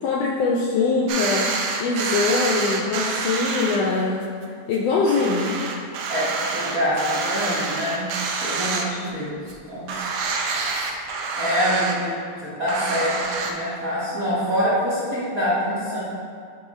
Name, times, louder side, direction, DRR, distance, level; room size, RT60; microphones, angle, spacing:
voice 1, 0.0-1.5 1.8-4.3 4.7-5.6, left 4 dB, 80° left, -3 dB, 1.5 m, -22 dB
sound 1, 1.1-3.8 4.2-4.3 4.7-4.8 5.1-9.2 9.5-9.6 9.9-11.9 12.7-13.5, right 4 dB, 75° right, 1.6 m, -27 dB
voice 2, 6.1-8.1 8.4-9.3 9.7-10.1 10.7-10.9 11.3-13.2 13.4-16.0, equal, 60° right, -10 dB, 0.9 m, -25 dB
8.4 x 3.1 x 4.1 m, 2.3 s
omnidirectional pair, 3.3 m